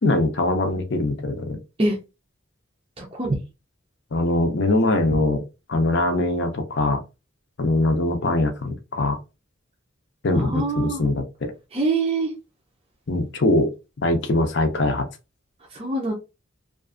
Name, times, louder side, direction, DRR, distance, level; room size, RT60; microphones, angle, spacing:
voice 1, 0.0-1.6 4.1-5.4 5.7-7.0 7.6-9.2 10.2-11.5 13.1-13.7 14.0-15.1, left 2 dB, 55° left, 6 dB, 0.5 m, -22 dB
voice 2, 3.0-3.4 10.3-11.1 11.7-12.3 15.7-16.1, right 2 dB, 25° right, -1 dB, 0.5 m, -24 dB
2.5 x 2.4 x 2.4 m, 0.28 s
head